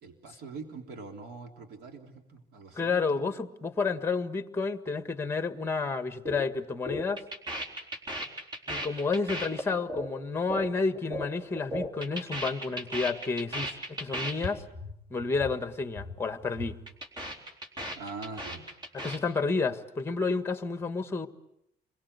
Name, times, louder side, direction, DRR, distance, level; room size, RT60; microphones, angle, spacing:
voice 1, 0.0-3.3 17.9-18.7 19.0-19.1, right 4 dB, 75° right, 5 dB, 3.4 m, -43 dB
voice 2, 2.7-7.2 8.7-14.6 15.1-16.7 19.0-21.3, left 4 dB, 15° left, 10 dB, 1.6 m, -30 dB
sound 1, 6.3-6.5 6.7-11.3 11.6-14.5 14.7-14.9 15.2-15.6 15.8-16.1 16.4-19.2, equal, 25° right, 3.9 m, -36 dB
30.0 x 23.0 x 8.3 m, 0.77 s
cardioid pair, 150°, 17 cm